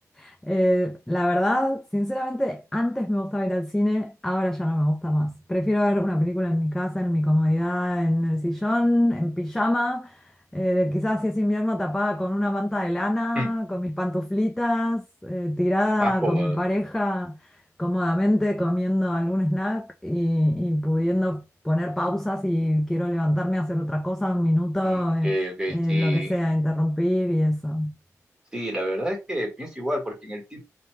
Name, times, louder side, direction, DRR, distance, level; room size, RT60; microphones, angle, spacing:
voice 1, 0.2-10.2 10.5-25.4 25.7-27.9, left 1 dB, 5° left, 0.4 m, -24 dB
voice 2, 16.0-16.6 24.8-26.4 28.5-30.6, equal, 10° right, 1.5 m, -29 dB
2.7 x 2.2 x 3.2 m
cardioid pair, 75°, 6 cm